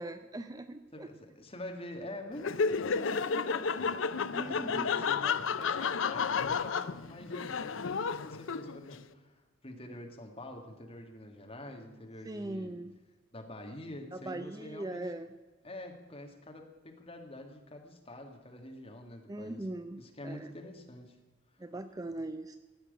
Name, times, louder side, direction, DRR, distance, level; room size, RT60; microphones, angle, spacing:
voice 1, 0.0-1.1 4.3-5.1 12.2-12.9 14.1-15.3 19.3-20.5 21.6-22.6, right 2 dB, 15° right, 9 dB, 0.4 m, -40 dB
voice 2, 0.9-12.8 13.3-15.1 15.6-19.7 20.0-21.2, left 1 dB, 30° left, 3 dB, 1.9 m, -46 dB
Laughter, 2.4-8.9, left 5 dB, 65° left, 0.5 m, -32 dB
16.0 x 6.1 x 9.2 m, 1.2 s
head